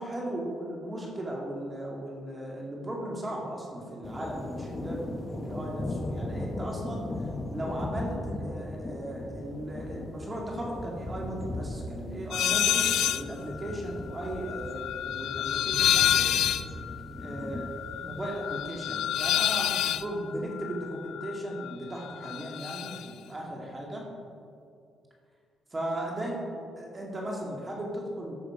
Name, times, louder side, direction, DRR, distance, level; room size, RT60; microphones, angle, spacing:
voice 1, 0.0-16.3 17.2-17.6 18.0-24.0 25.7-26.4 26.8-28.3, right 1 dB, 25° right, -2 dB, 2.2 m, -37 dB
sound 1, 4.0-20.1, left 1 dB, 20° left, 0.9 m, -38 dB
sound 2, 12.3-13.3 13.6-21.8 22.0-23.1, left 11 dB, 80° left, 0.3 m, -28 dB
13.5 x 6.4 x 4.9 m, 2.4 s
cardioid pair, 90°, 0 cm